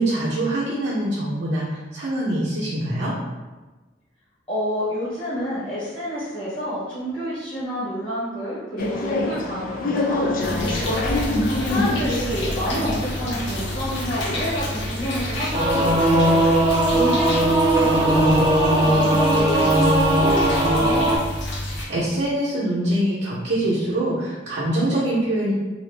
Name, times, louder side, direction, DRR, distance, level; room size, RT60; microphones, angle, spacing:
voice 1, 0.0-3.1 21.7-25.5, right 1 dB, 65° right, -9 dB, 0.7 m, -24 dB
voice 2, 4.5-10.9 11.7-21.2, equal, 30° left, -11 dB, 1.1 m, -29 dB
sound 1, 8.8-15.9, left 2 dB, 50° left, 0.4 m, -27 dB
sound 2, 10.4-21.8, left 1 dB, 75° left, 0.7 m, -29 dB
Singing / Musical instrument, 15.5-21.2, right 1 dB, 30° right, 0.5 m, -18 dB
2.7 x 2.5 x 3.3 m, 1.2 s
head